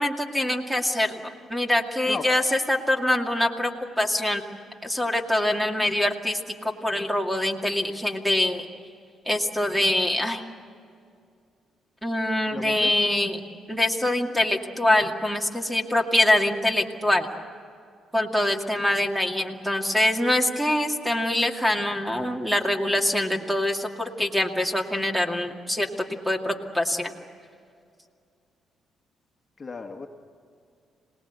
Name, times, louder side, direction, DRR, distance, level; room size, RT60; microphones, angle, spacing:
voice 1, 0.0-3.7 4.0-4.4 4.8-8.7 9.3-10.4 12.0-13.4 13.7-17.3 18.1-27.1, left 1 dB, 5° right, 3 dB, 2.3 m, -24 dB
voice 2, 12.5-13.0 29.6-30.1, left 4 dB, 30° left, 3 dB, 1.7 m, -35 dB
26.5 x 19.5 x 8.2 m, 2.3 s
cardioid pair, 90°, 0 cm